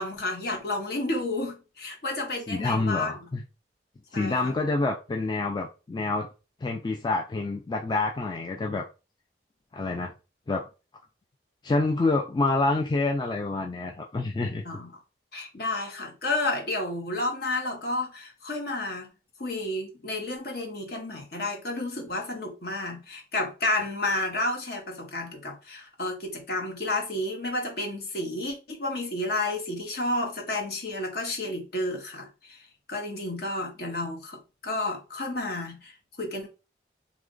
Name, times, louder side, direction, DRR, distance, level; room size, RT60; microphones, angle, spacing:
voice 1, 0.0-3.2 4.1-4.5 14.6-14.9 15.3-19.1 19.4-36.5, left 2 dB, 60° left, 1.0 m, -31 dB
voice 2, 2.5-3.4 4.1-6.3 6.6-8.8 9.7-10.1 10.5-10.6 11.6-14.6, left 3 dB, 25° left, 0.3 m, -27 dB
3.1 x 2.4 x 3.7 m
head